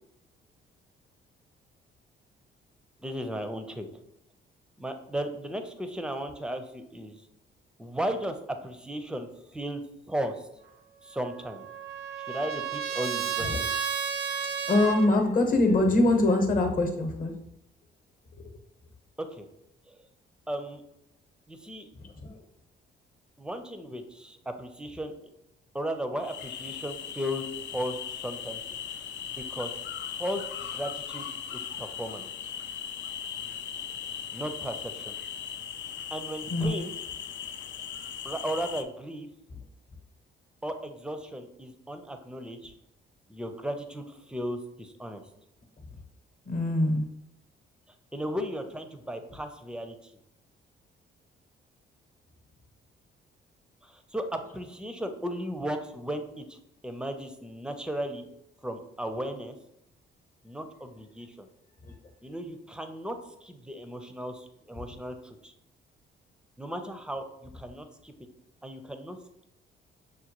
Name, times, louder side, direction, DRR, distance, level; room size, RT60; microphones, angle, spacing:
voice 1, 3.0-3.9 4.8-7.2 7.8-8.3 8.6-9.8 10.1-10.4 11.0-11.7 12.2-13.7 19.2-19.4 19.9-20.0 20.5-20.8 21.5-21.9 23.4-25.1 25.7-28.6 29.4-29.7 30.2-30.4 30.7-32.3 34.3-35.2 36.1-36.9 38.2-39.3 40.6-42.7 43.3-45.2 48.1-50.1 53.8-56.6 56.8-58.3 58.6-59.6 60.4-61.5 62.2-65.5 66.6-68.1 68.6-69.2, equal, 5° right, 7 dB, 0.5 m, -35 dB
Trumpet, 11.2-15.1, right 7 dB, 60° right, 0.4 m, -32 dB
voice 2, 14.7-17.3 22.0-22.3 36.5-36.7 46.4-47.1 61.8-61.9, left 2 dB, 45° left, 4 dB, 0.9 m, -24 dB
sound 1, 26.2-38.8, left 8 dB, 65° left, 0.4 m, -38 dB
6.4 x 2.2 x 2.9 m, 0.80 s
cardioid pair, 90°, 20 cm